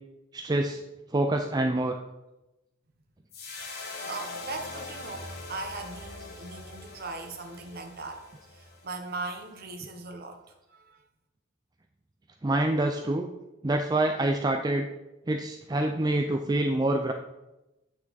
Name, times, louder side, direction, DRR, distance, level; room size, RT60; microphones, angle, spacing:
voice 1, 0.3-0.8 1.1-2.0 12.4-13.3 13.6-14.9 15.3-17.1, right 1 dB, 20° right, 4 dB, 0.4 m, -26 dB
sound 1, 3.3-9.7, left 3 dB, 50° left, 1.6 m, -42 dB
voice 2, 4.0-11.0, right 3 dB, 50° right, 5 dB, 1.1 m, -39 dB
8.7 x 5.8 x 4.0 m, 0.98 s
head